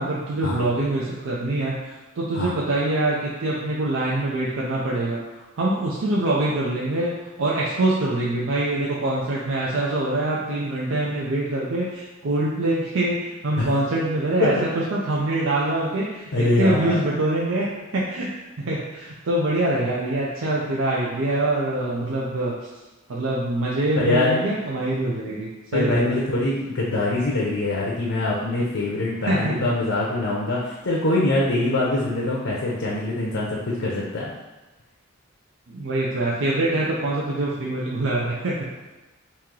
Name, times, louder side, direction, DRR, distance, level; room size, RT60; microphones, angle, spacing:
voice 1, 0.0-5.2 5.6-17.7 17.9-18.3 18.6-22.5 23.1-26.2 29.3-29.7 35.7-38.7, right 2 dB, 70° right, -5 dB, 0.5 m, -24 dB
voice 2, 16.3-17.0 24.0-24.4 25.7-34.3, left 2 dB, 65° left, -4 dB, 0.6 m, -23 dB
3.0 x 2.8 x 3.7 m, 1.1 s
head